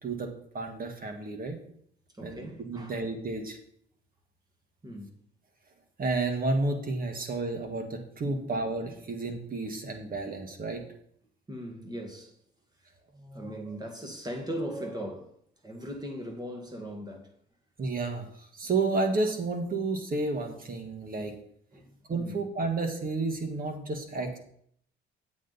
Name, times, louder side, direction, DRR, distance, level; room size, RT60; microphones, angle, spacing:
voice 1, 0.0-1.6 2.2-3.6 6.0-10.8 17.8-21.3 22.1-24.4, right 3 dB, 45° right, 1.8 m, -31 dB
voice 2, 2.1-3.0 4.8-5.1 8.3-8.5 11.5-12.4 13.1-15.3 15.6-17.3 21.7-22.3, equal, 20° right, 1.9 m, -39 dB
8.5 x 7.8 x 4.1 m
cardioid pair, 90°, 20 cm